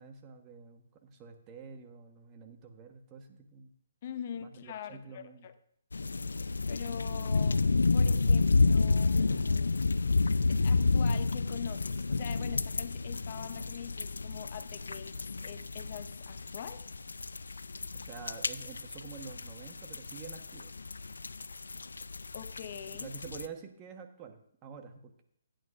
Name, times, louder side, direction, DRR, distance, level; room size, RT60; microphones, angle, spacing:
voice 1, 0.0-3.7 4.4-5.5 17.9-20.7 22.9-25.2, right 6 dB, 25° right, 5 dB, 1.2 m, -48 dB
voice 2, 4.0-5.5 6.7-7.6 7.9-9.7 10.4-16.9 22.3-23.1, left 9 dB, 45° left, 11 dB, 0.7 m, -43 dB
sound 1, 5.9-23.5, left 3 dB, 90° left, 0.4 m, -30 dB
16.0 x 9.1 x 2.5 m, 0.68 s
hypercardioid pair, 150°, 0 cm